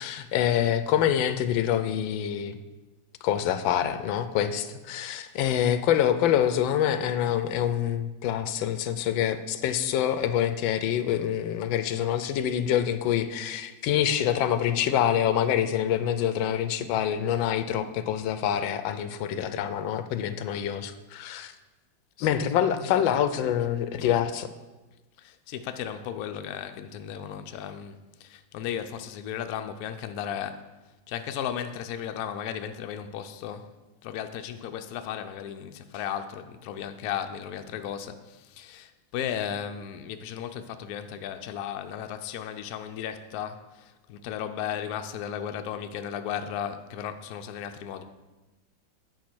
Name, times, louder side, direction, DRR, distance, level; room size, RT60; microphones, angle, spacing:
voice 1, 0.0-2.6 3.2-21.5 22.2-24.5, left 10 dB, 85° left, 1.4 m, -26 dB
voice 2, 22.2-23.2 24.0-24.1 25.2-30.7 31.1-33.7 34.0-48.0, left 9 dB, 70° left, 0.9 m, -35 dB
9.3 x 4.5 x 6.1 m
omnidirectional pair, 2.1 m